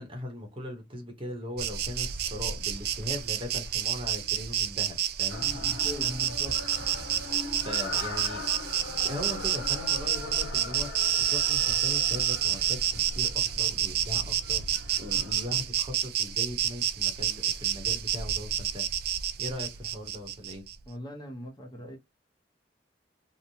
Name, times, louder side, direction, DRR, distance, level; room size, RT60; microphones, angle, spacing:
voice 1, 0.0-5.5 7.6-8.5 8.9-20.6, left 1 dB, 30° right, 0.9 m, -39 dB
Insect, 1.6-20.7, right 10 dB, 55° right, 0.3 m, -29 dB
sound 1, 5.3-15.6, left 3 dB, 70° left, 0.7 m, -41 dB
voice 2, 5.4-6.6 20.9-22.0, equal, 25° left, 0.7 m, -40 dB
2.9 x 2.1 x 2.6 m
head